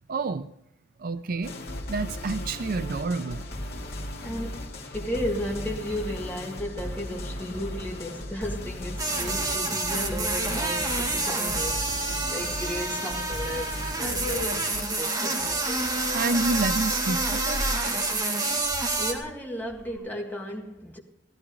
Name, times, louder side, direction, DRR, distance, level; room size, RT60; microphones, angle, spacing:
voice 1, 0.1-0.5 1.0-1.6 1.9-3.5 16.1-17.6, right 3 dB, 50° right, 0.4 m, -28 dB
sound 1, 1.4-14.8, left 1 dB, 55° left, 2.4 m, -36 dB
voice 2, 4.2-15.8 18.8-21.0, equal, 10° left, 1.9 m, -35 dB
sound 2, 9.0-19.1, right 2 dB, 20° right, 2.0 m, -28 dB
sound 3, 15.0-20.0, right 1 dB, 30° left, 4.7 m, -38 dB
15.0 x 14.0 x 3.7 m
head